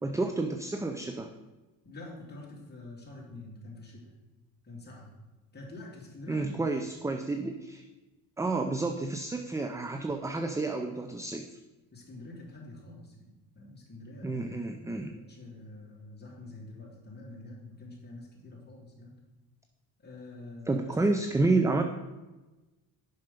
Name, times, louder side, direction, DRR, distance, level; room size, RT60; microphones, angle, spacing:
voice 1, 0.0-1.3 6.3-7.8 8.4-11.4 14.2-15.1 20.7-21.8, right 3 dB, 5° right, 6 dB, 0.4 m, -30 dB
voice 2, 1.8-4.1 4.6-5.1 5.5-6.6 11.9-13.3 13.5-19.1 20.0-21.2, left 2 dB, 20° left, -3 dB, 2.7 m, -46 dB
7.3 x 5.7 x 5.2 m, 1.1 s
cardioid pair, 90°, 45 cm